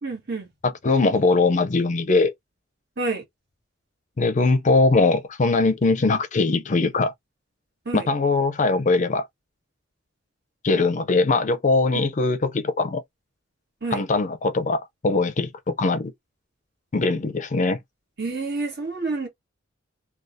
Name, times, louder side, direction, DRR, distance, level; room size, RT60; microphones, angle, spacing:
voice 1, 0.0-0.5 3.0-3.2 7.8-8.1 11.9-12.1 13.8-14.0 18.2-19.3, right 3 dB, 55° right, 1.5 m, -28 dB
voice 2, 0.6-2.3 4.2-7.1 7.9-9.3 10.6-13.0 13.9-16.1 16.9-17.8, left 3 dB, 40° left, 0.5 m, -21 dB
3.4 x 2.3 x 2.6 m
head